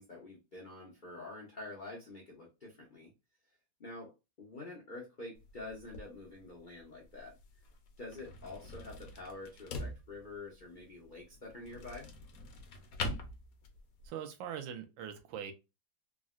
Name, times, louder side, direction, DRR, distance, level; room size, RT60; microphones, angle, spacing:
voice 1, 0.0-3.1 3.8-4.1 4.4-7.4 8.0-12.1, left 2 dB, 85° left, 0.4 m, -47 dB
sound 1, 5.4-14.1, left 2 dB, 70° left, 0.8 m, -45 dB
voice 2, 14.1-15.5, right 9 dB, 80° right, 1.4 m, -42 dB
3.7 x 2.1 x 2.4 m
omnidirectional pair, 2.1 m